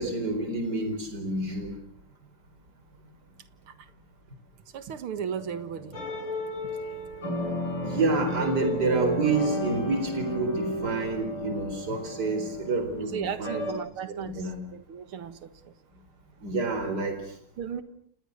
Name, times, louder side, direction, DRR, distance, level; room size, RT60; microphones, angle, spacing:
voice 1, 0.0-1.7 7.8-13.6 14.2-14.6 16.4-17.2, right 3 dB, 50° right, 6 dB, 5.0 m, -28 dB
voice 2, 4.7-6.0 6.6-6.7 13.0-15.7 17.6-17.8, right 8 dB, 80° right, 12 dB, 2.4 m, -36 dB
piano improvisation, 5.3-13.7, equal, 75° left, 7.4 m, -34 dB
29.5 x 27.5 x 6.6 m, 0.68 s
omnidirectional pair, 2.3 m